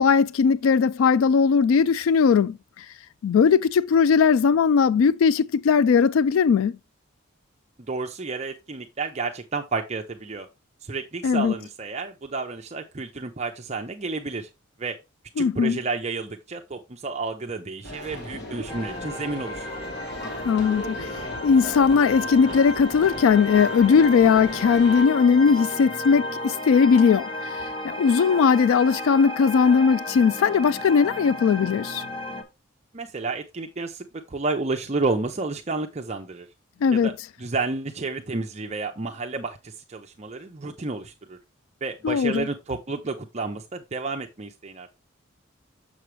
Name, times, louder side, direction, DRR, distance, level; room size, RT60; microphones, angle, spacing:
voice 1, 0.0-2.8 3.2-6.8 11.2-11.5 15.4-15.8 20.4-21.1 21.4-27.3 27.8-32.0 36.8-37.1 42.0-42.5, left 6 dB, 75° left, 0.3 m, -19 dB
voice 2, 7.8-10.5 10.8-14.5 14.8-15.0 15.4-19.7 32.9-36.5 36.9-37.1 37.4-41.4 41.8-44.9, right 3 dB, 30° right, 0.6 m, -31 dB
sound 1, 17.8-25.1, left 1 dB, 50° left, 1.5 m, -37 dB
sound 2, 18.7-32.4, left 1 dB, 25° left, 0.9 m, -33 dB
6.8 x 6.2 x 3.1 m
head